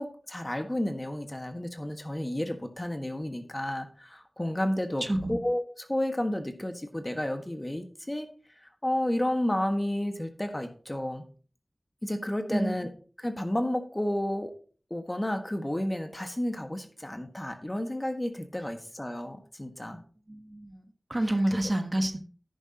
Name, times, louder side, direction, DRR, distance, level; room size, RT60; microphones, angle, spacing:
voice 1, 0.0-5.0 5.3-5.6 5.9-8.3 8.8-11.2 12.0-12.9 13.2-14.5 14.9-20.0, left 1 dB, 25° left, 6 dB, 1.5 m, -31 dB
voice 2, 5.0-5.4 12.5-12.8 20.3-22.2, right 1 dB, 40° right, 6 dB, 1.2 m, -29 dB
10.5 x 9.8 x 2.9 m, 0.40 s
wide cardioid pair, 50°, 0 cm